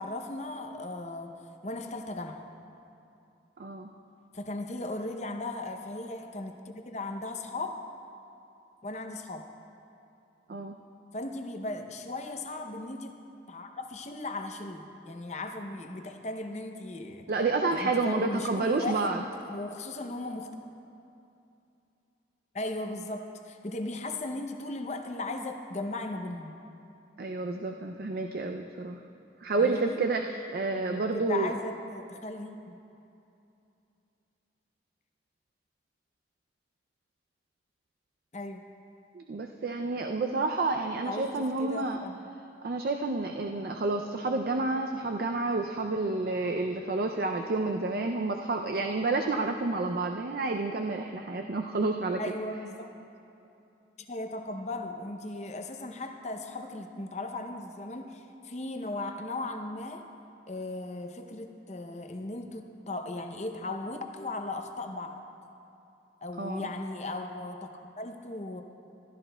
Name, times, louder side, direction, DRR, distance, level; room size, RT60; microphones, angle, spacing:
voice 1, 0.0-2.4 4.3-7.8 8.8-9.5 11.1-13.1 13.5-17.3 17.7-20.5 22.5-26.6 29.6-30.0 30.9-32.8 38.3-38.6 41.0-42.2 52.2-52.9 54.1-60.1 60.5-65.2 66.2-68.6, left 2 dB, 40° left, 5 dB, 0.6 m, -37 dB
voice 2, 3.6-3.9 10.5-10.8 17.3-19.2 27.2-29.0 29.4-31.5 39.1-42.0 42.6-52.2 66.4-66.7, right 3 dB, 55° right, 4 dB, 0.4 m, -29 dB
15.5 x 13.0 x 2.2 m, 2.7 s
head